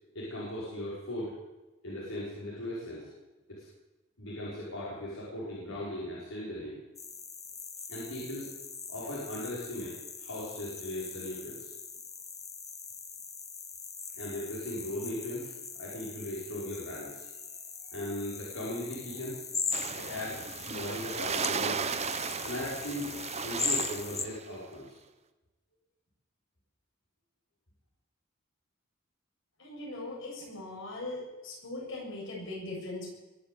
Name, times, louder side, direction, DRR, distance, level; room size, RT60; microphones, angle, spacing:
voice 1, 0.1-1.3 1.8-3.1 3.5-3.7 4.2-6.8 7.9-8.5 8.9-11.7 14.2-15.5 15.8-17.3 17.8-19.4 20.0-21.9 22.4-23.1 23.4-25.0, left 1 dB, 80° left, -7 dB, 5.5 m, -38 dB
sound 1, 7.0-24.3, left 5 dB, 15° left, 1.0 m, -40 dB
sound 2, 19.7-24.4, right 5 dB, 30° right, 0.8 m, -35 dB
voice 2, 29.6-33.1, left 2 dB, 65° left, -3 dB, 8.0 m, -40 dB
22.0 x 7.6 x 8.6 m, 1.1 s
head